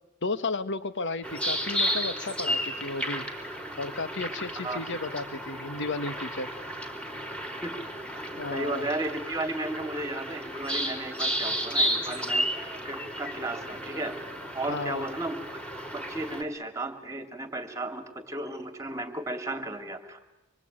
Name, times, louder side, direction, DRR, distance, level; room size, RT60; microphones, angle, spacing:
voice 1, 0.2-3.3 3.8-6.5 8.4-8.9 14.7-15.1, left 3 dB, 55° left, 12 dB, 1.4 m, -33 dB
sound 1, 1.2-16.4, equal, 5° left, 3.4 m, -33 dB
voice 2, 8.5-14.1 14.5-15.6 15.9-20.3, right 2 dB, 15° right, 8 dB, 2.6 m, -34 dB
26.0 x 24.0 x 9.0 m, 0.98 s
head